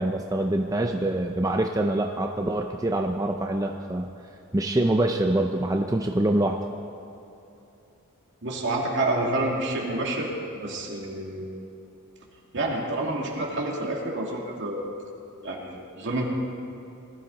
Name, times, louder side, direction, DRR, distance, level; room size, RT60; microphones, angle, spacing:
voice 1, 0.0-4.1 4.5-6.6, right 1 dB, 15° right, 3 dB, 0.5 m, -25 dB
voice 2, 8.4-10.3 10.6-11.5 12.5-14.9 15.4-16.3, right 2 dB, 60° right, -2 dB, 2.5 m, -28 dB
20.0 x 13.5 x 4.1 m, 2.8 s
head